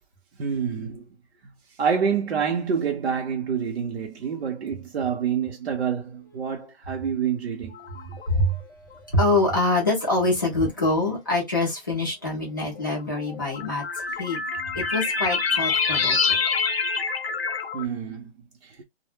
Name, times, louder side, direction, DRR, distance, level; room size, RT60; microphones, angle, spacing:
voice 1, 0.4-1.0 1.8-7.7 17.7-18.3, right 7 dB, 65° right, 0.7 m, -27 dB
sound 1, 7.7-8.4 9.2-9.4 10.5-10.6 12.8-17.8, left 5 dB, 65° left, 0.7 m, -26 dB
voice 2, 8.3-8.6 9.1-14.4 14.7-16.4, left 2 dB, 20° left, 0.5 m, -25 dB
2.1 x 2.0 x 3.1 m
hypercardioid pair, 170°, 33 cm